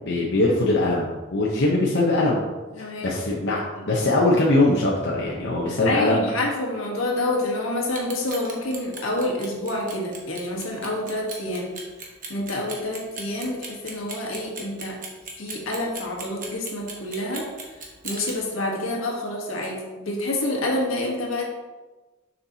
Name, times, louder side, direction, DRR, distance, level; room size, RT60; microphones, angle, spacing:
voice 1, 0.0-2.4 3.0-3.6 3.9-6.2, left 2 dB, 60° left, -3 dB, 0.8 m, -21 dB
voice 2, 2.7-3.2 3.5-3.6 5.8-11.7 12.3-15.0 15.4-17.5 18.0-21.4, left 1 dB, 80° left, -1 dB, 1.3 m, -28 dB
Clock, 7.9-18.3, right 4 dB, 40° right, 1.1 m, -37 dB
6.5 x 5.6 x 2.8 m, 1.2 s
head